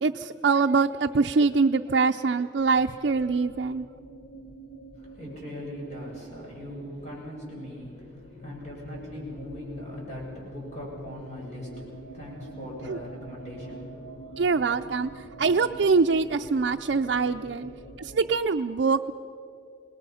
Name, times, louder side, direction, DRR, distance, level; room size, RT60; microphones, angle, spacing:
voice 1, 0.0-3.9 12.9-13.0 14.4-15.1 15.4-17.7 18.0-19.1, right 4 dB, 70° right, 4 dB, 0.4 m, -24 dB
sound 1, 2.6-18.5, right 1 dB, 75° left, 0.9 m, -45 dB
voice 2, 5.0-14.5 15.0-15.4 16.9-18.1, equal, 40° left, -4 dB, 7.5 m, -41 dB
27.0 x 20.0 x 5.6 m, 2.6 s
head